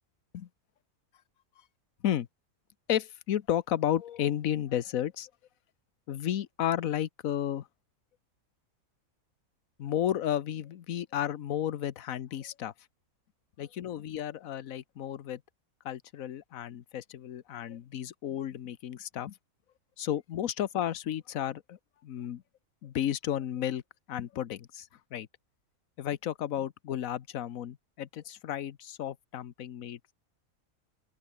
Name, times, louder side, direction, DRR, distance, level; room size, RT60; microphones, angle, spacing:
voice 1, 2.9-5.3 6.1-7.7 9.8-12.7 13.6-15.4 15.8-19.4 20.0-22.4 22.8-23.8 24.1-25.3 26.0-30.1, left 10 dB, 70° left, 1.3 m, -33 dB
open air
omnidirectional pair, 1.5 m